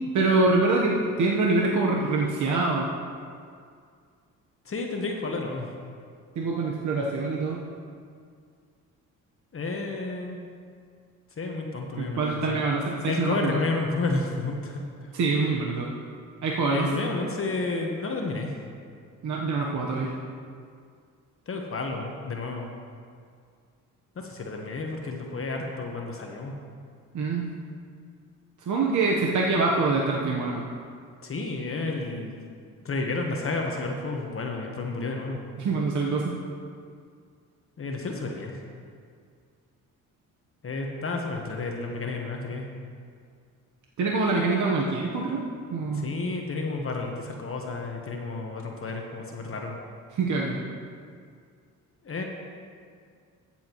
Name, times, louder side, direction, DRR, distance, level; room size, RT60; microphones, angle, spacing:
voice 1, 0.1-2.9 6.4-7.7 12.0-13.6 15.1-15.9 16.4-17.0 19.2-20.1 27.1-27.5 28.7-30.6 35.6-36.4 44.0-46.1 50.1-50.6, right 3 dB, 60° right, -2 dB, 1.0 m, -25 dB
voice 2, 4.7-5.7 9.5-10.4 11.4-12.6 13.1-14.8 16.7-18.5 21.5-22.7 24.2-26.5 31.2-32.4 32.8-35.4 37.8-38.5 40.6-42.7 45.9-49.7 52.0-52.2, left 3 dB, 40° left, 1 dB, 1.1 m, -31 dB
14.0 x 7.5 x 3.0 m, 2.2 s
cardioid pair, 70°, 33 cm